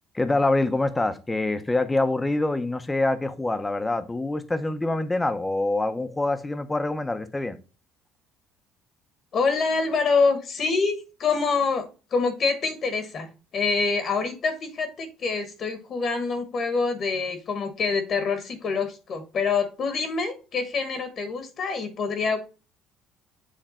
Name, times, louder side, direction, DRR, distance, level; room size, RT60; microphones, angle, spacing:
voice 1, 0.1-7.6, left 2 dB, 10° left, 0.7 m, -25 dB
voice 2, 9.3-11.8 12.1-13.3 13.5-22.4, left 4 dB, 45° left, 1.2 m, -26 dB
7.6 x 3.2 x 4.3 m
cardioid pair, 125°, 0 cm